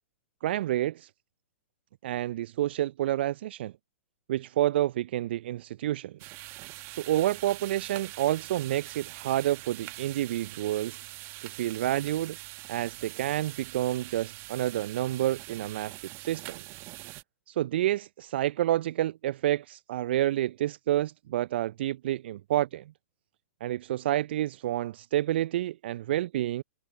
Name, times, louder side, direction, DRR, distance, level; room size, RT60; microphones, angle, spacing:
voice 1, 0.4-1.1 2.0-3.7 4.3-6.3 6.9-11.0 11.4-12.4 12.7-16.6 17.5-22.8 23.6-26.6, right 13 dB, 55° right, 0.5 m, -29 dB
sound 1, 6.2-17.2, right 21 dB, 35° right, 1.6 m, -44 dB
figure-of-eight pair, 115°, 7 cm